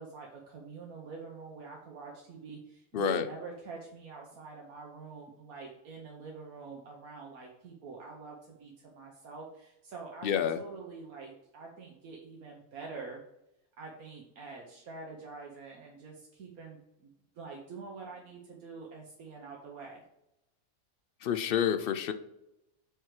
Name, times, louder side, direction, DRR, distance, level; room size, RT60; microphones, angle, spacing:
voice 1, 0.0-13.2 13.8-20.0, right 4 dB, 80° right, -1 dB, 1.5 m, -45 dB
voice 2, 2.9-3.2 10.2-10.6 21.2-22.1, left 8 dB, 70° left, 9 dB, 0.5 m, -28 dB
6.8 x 4.5 x 4.8 m, 0.88 s
omnidirectional pair, 1.5 m